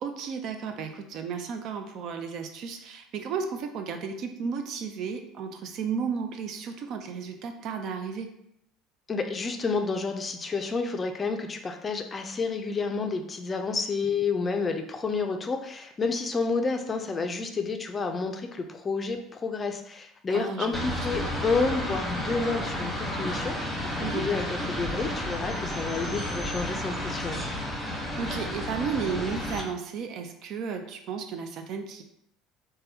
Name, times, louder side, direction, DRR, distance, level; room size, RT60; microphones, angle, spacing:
voice 1, 0.0-8.3 20.3-21.3 24.0-24.3 28.2-32.0, right 6 dB, 60° right, 6 dB, 0.4 m, -33 dB
voice 2, 9.1-27.4, left 4 dB, 30° left, 5 dB, 0.4 m, -30 dB
sound 1, 20.7-29.6, left 1 dB, 5° left, 1.1 m, -32 dB
3.3 x 2.2 x 2.8 m, 0.75 s
supercardioid pair, 90°, 0 cm